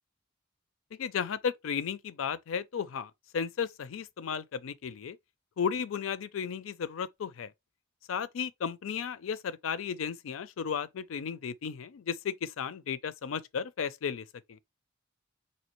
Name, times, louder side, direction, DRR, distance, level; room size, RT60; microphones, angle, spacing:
voice 1, 1.0-5.2 5.6-7.5 8.1-14.6, left 7 dB, 85° left, 0.4 m, -34 dB
4.2 x 2.8 x 3.0 m
head